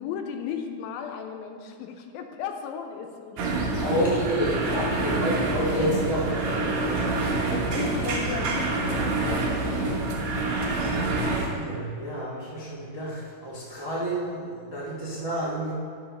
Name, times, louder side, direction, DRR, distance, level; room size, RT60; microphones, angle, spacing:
voice 1, 0.0-4.0 4.3-5.1 7.3-10.0, left 7 dB, 80° left, 5 dB, 2.5 m, -36 dB
sound 1, 3.4-11.5, right 2 dB, 60° right, 2.3 m, -27 dB
voice 2, 3.8-7.9 11.1-15.7, equal, 35° right, -7 dB, 0.3 m, -30 dB
10.5 x 5.8 x 5.3 m, 2.2 s
omnidirectional pair, 4.2 m